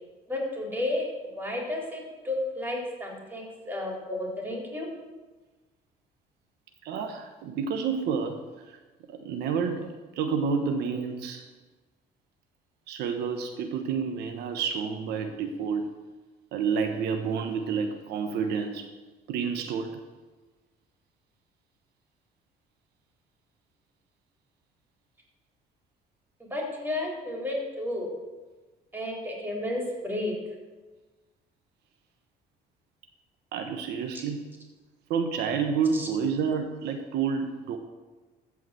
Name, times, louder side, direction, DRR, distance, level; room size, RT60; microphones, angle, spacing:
voice 1, 0.3-1.0 1.3-4.9 26.4-28.1 28.9-30.3 34.1-34.2 35.9-36.1, left 1 dB, 10° right, -2 dB, 3.7 m, -32 dB
voice 2, 6.8-8.4 8.7-8.8 9.1-11.5 12.9-15.9 16.5-18.9 19.3-20.0 33.5-34.4 35.1-37.8, right 6 dB, 80° right, 5 dB, 1.1 m, -29 dB
14.5 x 4.9 x 7.6 m, 1.3 s
cardioid pair, 110°, 17 cm